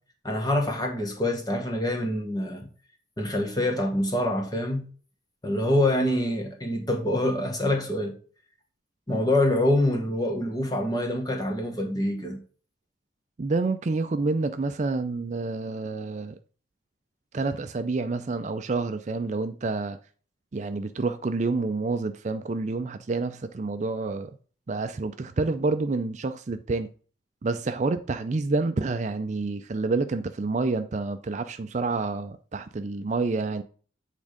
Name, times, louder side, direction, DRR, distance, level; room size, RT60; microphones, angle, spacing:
voice 1, 0.2-2.7 3.2-4.8 5.4-8.1 9.1-12.4, left 1 dB, 20° left, 1.3 m, -25 dB
voice 2, 13.4-16.4 17.3-20.0 20.5-24.3 24.7-26.9 27.4-33.6, right 3 dB, 35° right, 0.4 m, -28 dB
8.4 x 3.6 x 5.0 m
head